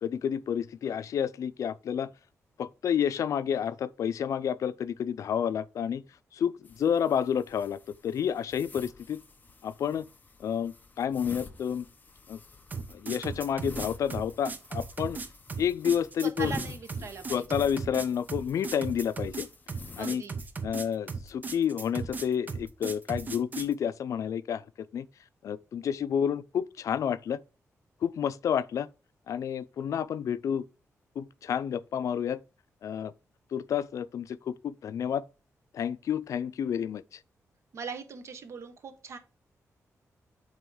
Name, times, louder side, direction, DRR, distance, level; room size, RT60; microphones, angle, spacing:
voice 1, 0.0-2.1 2.6-6.0 6.3-9.2 9.6-10.1 10.4-11.9 12.3-12.4 12.9-15.2 15.6-16.5 17.3-19.5 20.0-20.2 20.6-24.6 24.9-25.1 25.4-27.4 28.0-28.9 29.3-30.6 31.2-32.4 32.8-33.1 33.5-35.2 35.7-37.2, left 8 dB, 70° left, 0.4 m, -30 dB
sound 1, 6.6-20.0, left 3 dB, 30° left, 0.9 m, -48 dB
sound 2, 12.7-23.7, right 4 dB, 30° right, 0.8 m, -37 dB
voice 2, 16.4-17.4 20.0-20.3 37.7-39.2, right 5 dB, 55° right, 1.2 m, -40 dB
9.1 x 3.1 x 4.7 m
wide cardioid pair, 155°, 6 cm